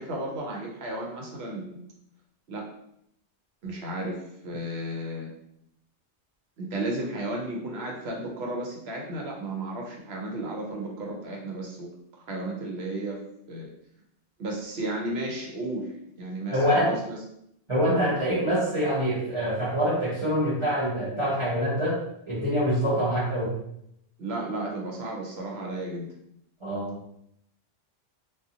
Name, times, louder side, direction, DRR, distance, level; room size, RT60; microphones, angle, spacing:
voice 1, 0.0-1.8 2.5-2.7 3.6-5.3 6.6-11.9 12.3-13.2 13.5-13.7 14.4-15.9 16.2-17.2 24.2-26.1, right 1 dB, 65° right, -1 dB, 0.8 m, -33 dB
voice 2, 16.5-17.0 17.7-22.0 22.3-23.5 26.6-27.0, equal, 30° right, -9 dB, 0.6 m, -25 dB
2.5 x 2.4 x 2.7 m, 0.75 s
omnidirectional pair, 1.2 m